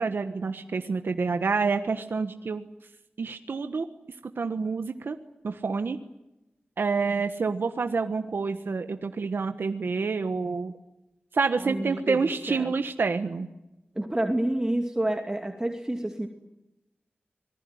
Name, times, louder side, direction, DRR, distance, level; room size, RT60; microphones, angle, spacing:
voice 1, 0.0-2.6 3.2-3.9 4.4-5.2 5.4-6.0 6.8-10.7 11.3-13.5, right 4 dB, 80° right, 7 dB, 1.3 m, -28 dB
voice 2, 11.6-12.7 14.0-16.3, right 1 dB, 20° right, 3 dB, 2.6 m, -29 dB
26.0 x 20.0 x 9.4 m, 0.94 s
wide cardioid pair, 90°, 4 cm